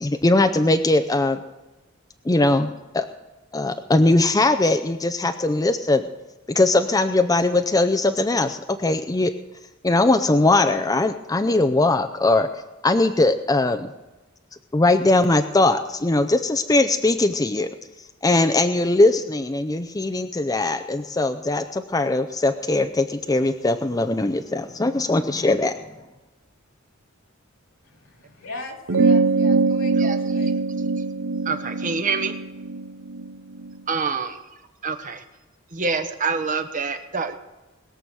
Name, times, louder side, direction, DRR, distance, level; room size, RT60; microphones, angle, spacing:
voice 1, 0.0-1.4 2.3-3.1 3.5-6.0 6.5-9.3 9.8-12.5 12.8-13.9 14.7-17.7 18.2-25.7, left 2 dB, 15° left, 7 dB, 0.5 m, -20 dB
voice 2, 27.8-30.6, left 2 dB, 85° left, 2 dB, 3.0 m, -40 dB
sound 1, 28.9-33.7, right 3 dB, 65° right, 0.7 m, -22 dB
voice 3, 31.4-32.3 33.9-34.4 34.8-35.2 35.7-37.3, right 4 dB, 40° right, 7 dB, 1.1 m, -26 dB
21.0 x 7.0 x 6.2 m, 1.1 s
head